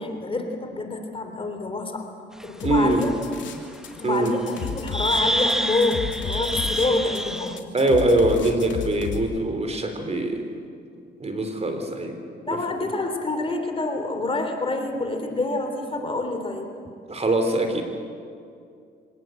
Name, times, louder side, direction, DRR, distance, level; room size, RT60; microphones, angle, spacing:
voice 1, 0.0-2.1 2.4-3.1 4.0-7.7 12.5-16.7, left 2 dB, 25° left, 4 dB, 3.3 m, -27 dB
sound 1, 2.4-2.5 3.0-3.1 4.5-4.6 4.9-7.6, equal, ahead, 1.1 m, -27 dB
sound 2, 2.6-3.9 4.2-9.2, left 7 dB, 70° left, 3.1 m, -32 dB
voice 2, 2.6-3.0 4.0-4.3 7.7-10.4 11.2-12.2 12.5-12.6 17.1-17.8, right 2 dB, 30° right, 6 dB, 3.6 m, -22 dB
25.5 x 18.0 x 7.9 m, 2.4 s
cardioid pair, 90°, 20 cm